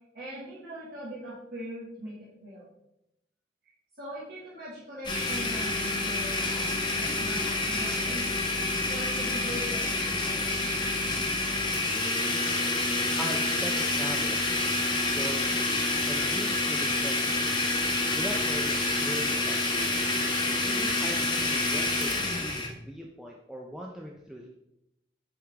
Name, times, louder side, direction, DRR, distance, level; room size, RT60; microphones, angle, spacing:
voice 1, 0.1-2.7 4.0-8.3 8.9-10.6, right 1 dB, 55° right, -9 dB, 1.6 m, -41 dB
Domestic sounds home sounds, 5.0-22.7, left 2 dB, 25° left, 1.0 m, -28 dB
voice 2, 13.2-14.4 14.9-15.6 16.1-17.4 18.1-19.9 20.6-24.5, equal, 5° right, -1 dB, 0.4 m, -40 dB
7.7 x 3.6 x 3.4 m, 0.83 s
head